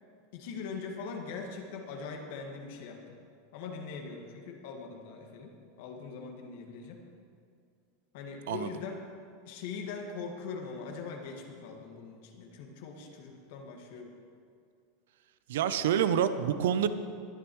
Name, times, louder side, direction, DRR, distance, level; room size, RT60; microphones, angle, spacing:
voice 1, 0.3-3.2 3.5-7.0 8.1-9.0 9.5-14.1, left 5 dB, 65° left, 2 dB, 1.9 m, -41 dB
voice 2, 15.5-16.9, right 9 dB, 70° right, 12 dB, 0.7 m, -27 dB
21.0 x 10.0 x 3.2 m, 2.3 s
hypercardioid pair, 90°, 0 cm